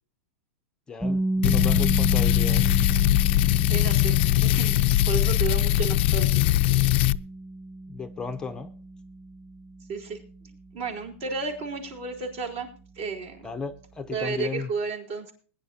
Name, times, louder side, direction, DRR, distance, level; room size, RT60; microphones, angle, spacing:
voice 1, 0.9-2.7 7.9-8.7 13.4-14.7, left 5 dB, 10° left, 8 dB, 0.6 m, -34 dB
sound 1, 1.0-12.9, right 2 dB, 5° right, 1.8 m, -33 dB
sound 2, 1.4-7.2, left 15 dB, 50° left, 0.4 m, -21 dB
voice 2, 3.7-6.4 9.9-10.2 10.7-12.7 13.0-13.5 14.1-15.3, right 5 dB, 50° right, 2 dB, 4.3 m, -32 dB
20.5 x 10.5 x 2.8 m, 0.42 s
supercardioid pair, 155°, 7 cm